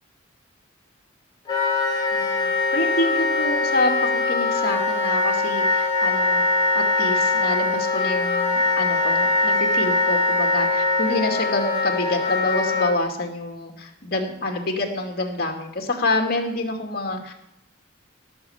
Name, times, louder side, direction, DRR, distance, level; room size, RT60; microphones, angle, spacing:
Wind instrument woodwind instrument, 1.5-12.9, left 3 dB, 20° left, 3.8 m, -22 dB
voice 1, 2.1-6.4 6.7-17.3, left 2 dB, 50° left, 2 dB, 2.5 m, -27 dB
18.0 x 7.0 x 6.8 m, 0.88 s
head